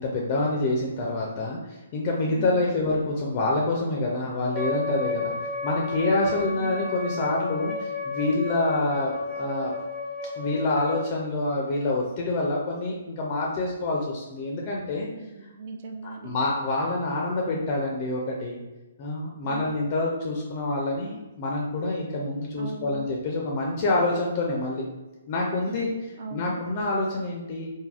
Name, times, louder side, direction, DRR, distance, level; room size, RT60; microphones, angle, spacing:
voice 1, 0.0-5.3 5.6-9.8 10.4-15.1 16.0-18.6 19.0-24.8 25.3-25.9 26.3-27.7, left 2 dB, 35° left, -1 dB, 0.4 m, -27 dB
Wind instrument woodwind instrument, 4.5-11.1, left 3 dB, 5° left, 0.7 m, -32 dB
voice 2, 15.1-16.3 19.4-19.8 22.6-22.9 25.7-26.6, right 3 dB, 50° right, 3 dB, 0.4 m, -39 dB
3.3 x 2.2 x 2.4 m, 1.1 s
figure-of-eight pair, 130°, 0 cm